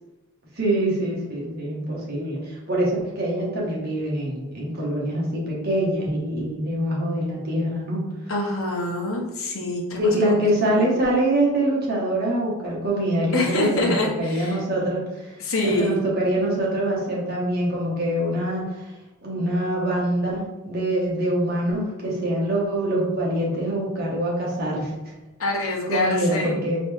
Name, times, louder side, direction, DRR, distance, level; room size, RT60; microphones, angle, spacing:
voice 1, 0.6-8.0 10.0-15.3 15.6-18.6 19.2-24.9 25.9-26.8, right 1 dB, 45° right, -4 dB, 1.3 m, -24 dB
voice 2, 8.3-10.9 13.3-14.6 15.4-16.0 25.4-26.6, left 2 dB, 80° left, -2 dB, 1.1 m, -26 dB
4.2 x 3.1 x 3.5 m, 1.1 s
head